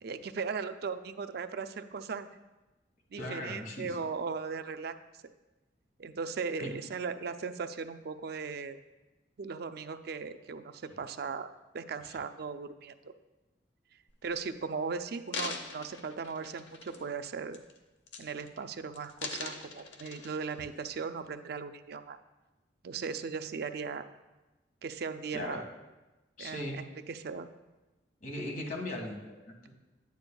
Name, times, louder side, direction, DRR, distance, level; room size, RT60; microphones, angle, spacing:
voice 1, 0.0-2.3 3.1-4.9 6.0-8.8 9.4-11.5 11.7-13.1 14.2-17.6 18.2-22.2 22.8-24.1 24.8-25.6 26.4-27.5, right 5 dB, 60° right, 9 dB, 0.4 m, -38 dB
voice 2, 3.1-3.9 6.6-6.7 12.1-12.2 25.3-25.6 26.4-26.8 28.2-29.7, left 1 dB, 50° left, 0 dB, 1.7 m, -38 dB
sound 1, 14.1-14.4 15.1-17.2 17.5-17.8 18.1-18.6 18.9-20.7 21.2-21.3, left 4 dB, 75° left, 0.9 m, -42 dB
10.5 x 9.4 x 2.3 m, 1.1 s
head